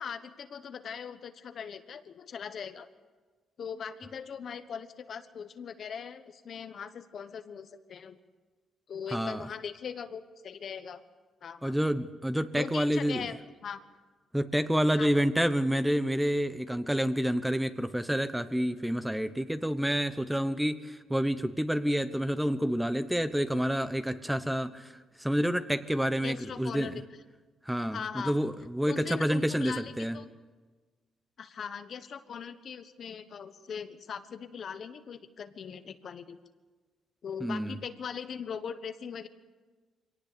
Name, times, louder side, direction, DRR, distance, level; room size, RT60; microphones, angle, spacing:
voice 1, 0.0-2.9 3.6-8.2 8.9-11.0 11.4-11.8 12.6-13.8 14.9-15.2 26.2-26.9 27.9-28.4 28.9-30.3 31.4-36.4 37.2-39.3, left 7 dB, 55° left, 10 dB, 1.2 m, -40 dB
voice 2, 9.1-9.5 11.6-13.3 14.3-24.9 25.2-27.0 27.7-30.2 37.4-37.8, equal, 5° right, 11 dB, 0.9 m, -28 dB
23.5 x 18.0 x 6.9 m, 1.3 s
cardioid pair, 90°, 0 cm